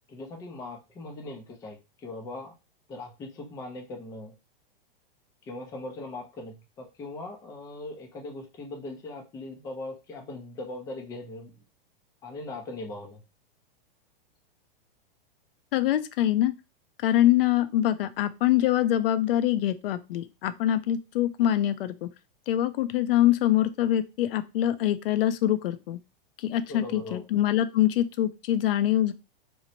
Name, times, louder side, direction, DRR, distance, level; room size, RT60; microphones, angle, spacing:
voice 1, 0.1-2.5 2.9-4.3 5.4-11.6 12.2-13.2 26.7-27.2, left 2 dB, 10° left, 1 dB, 0.4 m, -40 dB
voice 2, 15.7-16.5 17.0-22.1 22.5-26.0 26.4-29.1, left 12 dB, 70° left, 13 dB, 0.5 m, -24 dB
3.0 x 2.0 x 2.6 m, 0.27 s
hypercardioid pair, 135°, 29 cm